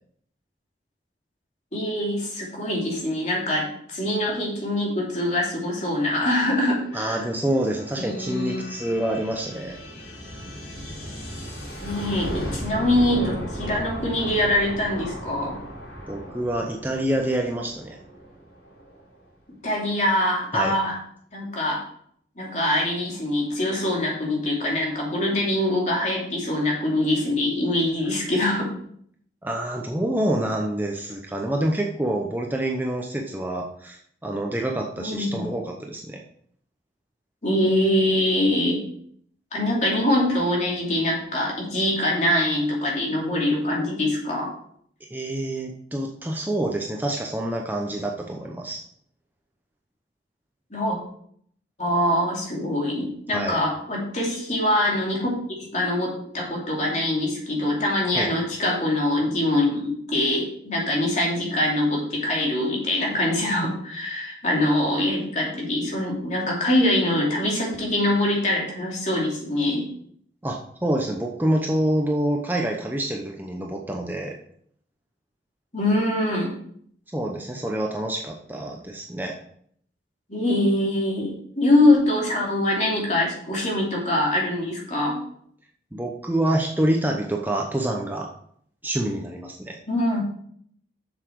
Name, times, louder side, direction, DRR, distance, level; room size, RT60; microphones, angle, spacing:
voice 1, 1.7-7.2 8.0-8.6 11.8-15.6 19.6-21.0 21.3-21.8 22.4-28.7 35.0-35.5 37.4-38.8 39.5-44.5 50.7-51.0 51.8-55.3 55.7-69.8 75.7-76.5 80.3-85.2 89.9-90.2, left 1 dB, 40° left, -2 dB, 2.9 m, -23 dB
sound 1, 5.7-19.2, equal, 80° left, 3.8 m, -36 dB
voice 2, 6.9-9.8 16.1-18.0 20.5-20.7 29.4-36.2 45.1-48.8 53.3-53.6 58.1-58.3 70.4-74.3 77.1-79.4 85.9-88.3 88.8-89.8, right 1 dB, 10° right, 1 dB, 0.8 m, -27 dB
7.4 x 7.0 x 4.7 m, 0.64 s
head